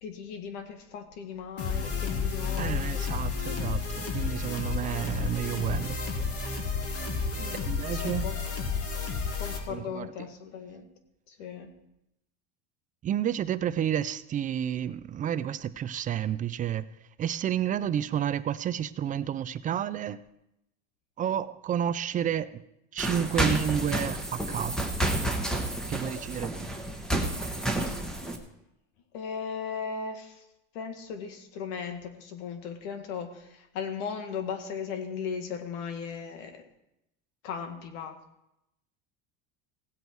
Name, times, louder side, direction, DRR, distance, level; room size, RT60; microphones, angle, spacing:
voice 1, 0.0-3.1 7.4-8.6 9.4-10.9 11.3-11.7 27.8-28.0 29.1-30.4 30.7-36.6 37.4-38.2, left 6 dB, 85° left, 1.9 m, -37 dB
sound 1, 1.6-9.6, left 5 dB, 40° left, 2.3 m, -31 dB
voice 2, 2.6-6.0 7.7-8.3 9.7-10.3 13.0-16.8 17.2-20.2 21.2-22.6 22.9-24.9 25.9-26.7, right 10 dB, 25° right, 0.4 m, -30 dB
sound 2, 23.0-28.4, right 1 dB, ahead, 1.3 m, -30 dB
17.5 x 8.0 x 4.6 m
supercardioid pair, 130°, 36 cm